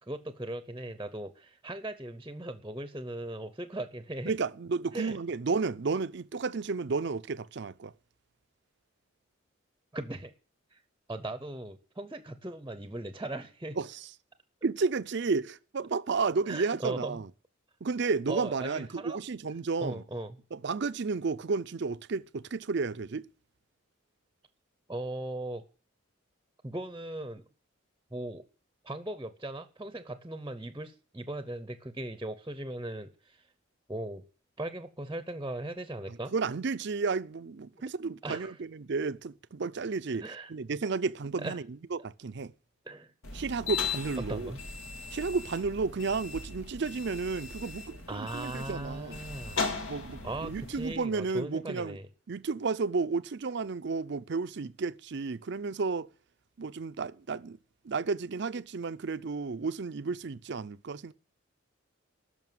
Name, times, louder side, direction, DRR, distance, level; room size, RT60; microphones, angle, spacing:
voice 1, 0.0-4.3 4.9-5.2 9.9-10.3 10.7-10.8 11.1-13.8 16.5-17.2 18.3-19.2 19.8-20.4 24.9-25.6 26.6-27.4 28.1-28.4 28.8-33.5 33.9-34.2 34.6-36.3 38.2-38.6 40.2-40.5 41.4-41.5 42.8-43.1 44.3-44.6 48.1-49.6 50.2-52.1, right 1 dB, 15° right, 0.7 m, -38 dB
voice 2, 4.3-7.9 13.8-14.0 14.6-17.3 17.8-20.0 20.5-23.2 36.1-41.6 41.9-42.5 43.3-44.5 45.1-49.2 49.9-52.0 52.3-56.1 56.6-57.6 57.8-61.1, right 4 dB, 55° right, 0.5 m, -32 dB
sound 1, 43.2-50.9, left 4 dB, 85° left, 2.2 m, -38 dB
11.0 x 6.4 x 9.2 m
head